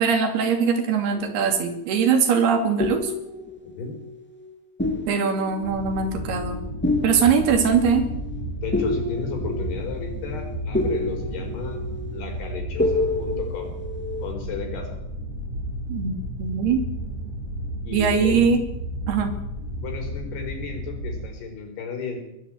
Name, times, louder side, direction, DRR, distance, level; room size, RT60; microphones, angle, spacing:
voice 1, 0.0-3.1 5.1-6.6 7.0-8.1 15.9-16.8 17.9-18.6 19.1-19.3, right 6 dB, 70° right, 6 dB, 4.4 m, -21 dB
sound 1, 1.2-2.2 2.8-4.5 4.8-14.3, left 2 dB, 5° left, 1.0 m, -30 dB
voice 2, 3.6-4.0 8.6-11.8 12.1-13.8 14.2-15.0 17.8-18.4 19.8-22.2, left 5 dB, 75° left, 3 dB, 6.8 m, -34 dB
sound 2, 5.6-21.3, right 1 dB, 15° right, 7.3 m, -32 dB
21.5 x 13.0 x 9.3 m, 0.84 s
omnidirectional pair, 4.8 m